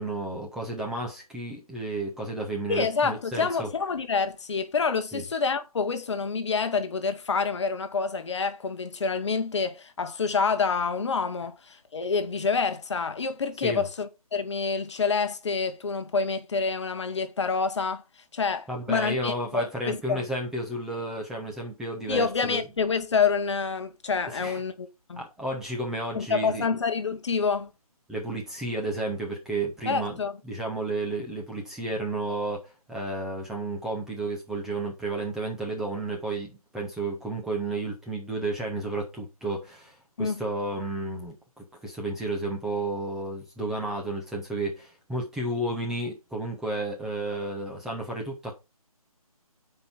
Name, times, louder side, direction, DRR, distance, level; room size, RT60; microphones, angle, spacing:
voice 1, 0.0-3.7 5.1-5.2 13.6-13.9 18.7-22.6 24.3-24.6 25.2-26.8 28.1-48.6, right 2 dB, ahead, 0.8 m, -32 dB
voice 2, 2.7-18.0 18.3-20.2 22.1-25.2 26.1-27.7 29.9-30.4 40.2-40.4, left 5 dB, 50° left, 1.0 m, -27 dB
6.9 x 4.6 x 5.5 m
figure-of-eight pair, 150°, 19 cm